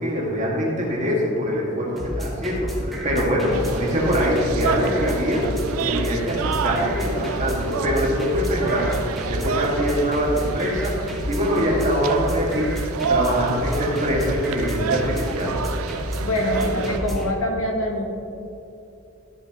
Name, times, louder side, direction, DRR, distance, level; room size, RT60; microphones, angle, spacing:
voice 1, 0.0-5.4 5.8-9.0 9.3-10.9 11.3-12.7 13.1-15.5, equal, 35° right, -4 dB, 2.0 m, -23 dB
sound 1, 2.0-17.3, equal, ahead, 1.2 m, -30 dB
sound 2, 3.5-17.0, right 6 dB, 75° right, 0.4 m, -30 dB
voice 2, 16.2-18.0, left 1 dB, 70° left, 1 dB, 1.4 m, -24 dB
13.0 x 8.0 x 3.0 m, 2.8 s
head